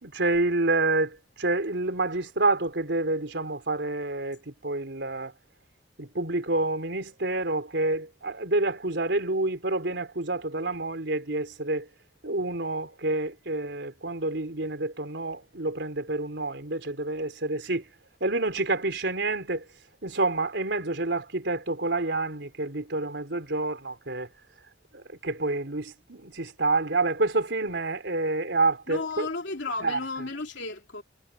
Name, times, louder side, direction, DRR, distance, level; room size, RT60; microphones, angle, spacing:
voice 1, 0.0-5.3 6.0-11.9 12.2-17.9 18.2-19.6 20.0-24.3 24.9-29.3 29.8-30.3, right 2 dB, 80° right, 3.5 m, -28 dB
voice 2, 28.9-31.0, left 3 dB, 90° left, 3.0 m, -33 dB
head